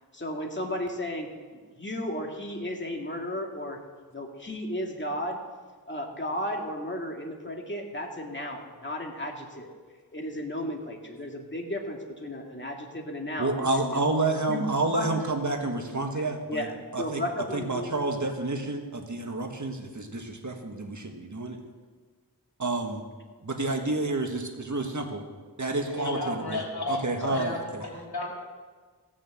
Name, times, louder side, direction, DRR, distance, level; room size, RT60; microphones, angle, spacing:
voice 1, 0.1-3.8 4.1-5.4 5.9-9.7 10.1-14.0 14.5-15.1 16.2-18.4, left 1 dB, 30° left, 1 dB, 2.2 m, -34 dB
voice 2, 13.4-16.7 16.9-17.2 17.5-21.6 22.6-23.0 23.4-25.2 25.6-27.8, right 2 dB, 45° right, 3 dB, 1.6 m, -29 dB
voice 3, 25.7-28.3, left 2 dB, 70° left, -1 dB, 3.2 m, -33 dB
16.5 x 6.5 x 7.7 m, 1.5 s
wide cardioid pair, 60°, 39 cm